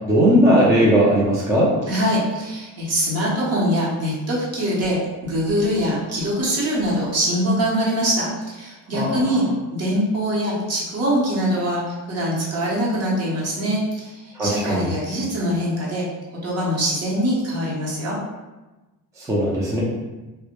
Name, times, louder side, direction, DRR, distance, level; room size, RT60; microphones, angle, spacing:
voice 1, 0.1-1.7 8.9-9.2 14.4-15.0 19.3-19.8, equal, 10° right, -6 dB, 0.4 m, -18 dB
voice 2, 1.9-9.4 9.7-16.0 16.4-18.2, equal, 45° right, -5 dB, 0.8 m, -23 dB
2.1 x 2.0 x 2.9 m, 1.1 s
cardioid pair, 125°, 33 cm